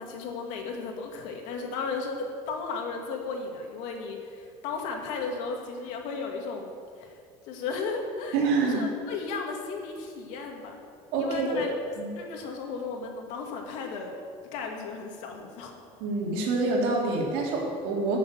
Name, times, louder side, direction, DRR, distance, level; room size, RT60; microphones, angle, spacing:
voice 1, 0.0-6.7 7.0-7.2 7.5-10.8 11.2-11.7 12.2-14.1 14.5-15.7, left 4 dB, 65° left, 2 dB, 2.2 m, -35 dB
voice 2, 8.3-8.8 11.1-11.6 12.0-12.1 16.0-18.2, right 3 dB, 80° right, -2 dB, 3.5 m, -26 dB
13.0 x 7.2 x 7.9 m, 2.3 s
cardioid pair, 160°, 13 cm